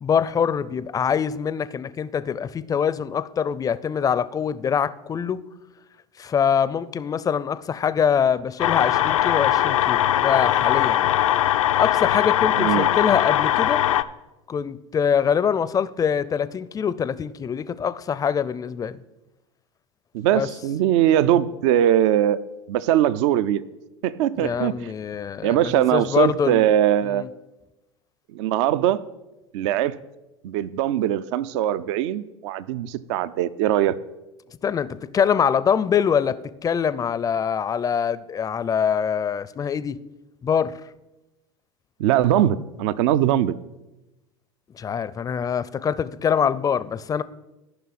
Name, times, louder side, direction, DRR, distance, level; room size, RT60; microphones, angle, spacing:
voice 1, 0.0-5.4 6.2-11.2 11.7-13.8 14.5-19.0 20.3-20.5 24.4-26.6 27.1-27.3 34.6-40.0 40.4-40.8 44.7-47.2, left 7 dB, 20° left, 0.4 m, -24 dB
sound 1, 8.6-14.0, left 12 dB, 85° left, 0.4 m, -20 dB
voice 2, 12.6-12.9 20.1-22.4 22.7-23.6 24.0-24.9 25.4-27.2 28.3-29.0 29.5-30.0 30.4-33.9 42.0-43.6, right 11 dB, 65° right, 0.5 m, -21 dB
13.0 x 5.6 x 4.2 m
hypercardioid pair, 90°, 17 cm